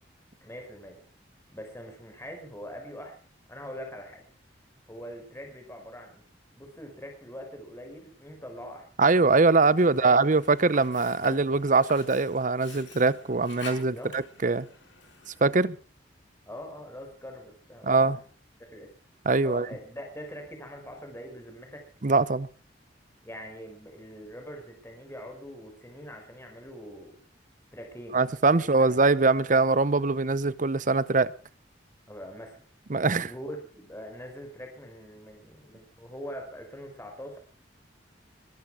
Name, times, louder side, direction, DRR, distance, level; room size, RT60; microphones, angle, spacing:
voice 1, 0.4-1.0 1.5-3.2 3.5-4.2 4.9-6.2 6.5-8.9 9.8-10.1 13.7-14.1 16.5-18.2 18.7-18.9 19.4-21.8 23.2-27.2 27.7-28.2 28.8-29.0 32.1-32.6 33.3-37.4, equal, 15° left, 5.0 m, -43 dB
voice 2, 9.0-14.7 15.4-15.8 17.8-18.2 19.3-19.7 22.0-22.5 28.1-31.3 32.9-33.3, right 3 dB, 45° right, 0.8 m, -22 dB
Sink (filling or washing), 9.7-15.6, left 4 dB, 85° left, 5.2 m, -48 dB
22.0 x 13.0 x 4.9 m
head